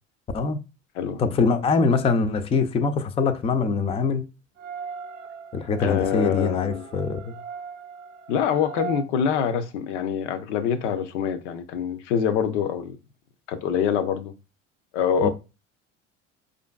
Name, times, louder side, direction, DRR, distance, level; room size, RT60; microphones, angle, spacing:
voice 1, 1.2-4.2 5.5-7.3 15.2-15.3, left 4 dB, 15° left, 0.4 m, -23 dB
sound 1, 4.6-9.1, right 6 dB, 85° right, 0.5 m, -38 dB
voice 2, 5.8-6.8 8.3-13.0 13.5-14.3 14.9-15.3, left 8 dB, 70° left, 0.6 m, -25 dB
4.8 x 2.5 x 2.3 m
figure-of-eight pair, 70°, 37 cm